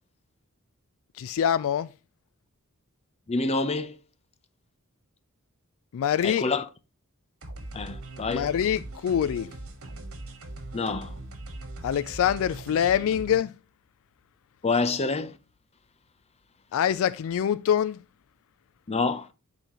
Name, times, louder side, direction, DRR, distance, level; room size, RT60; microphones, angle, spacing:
voice 1, 1.1-1.9 5.9-6.5 8.3-9.5 11.8-13.5 16.7-18.0, left 9 dB, 65° left, 0.3 m, -25 dB
voice 2, 3.3-4.0 6.2-6.6 7.7-8.5 10.7-11.1 14.6-15.3 18.9-19.3, left 3 dB, 30° left, 0.6 m, -27 dB
sound 1, 7.4-13.4, right 2 dB, 70° right, 1.6 m, -40 dB
10.0 x 4.2 x 3.0 m
head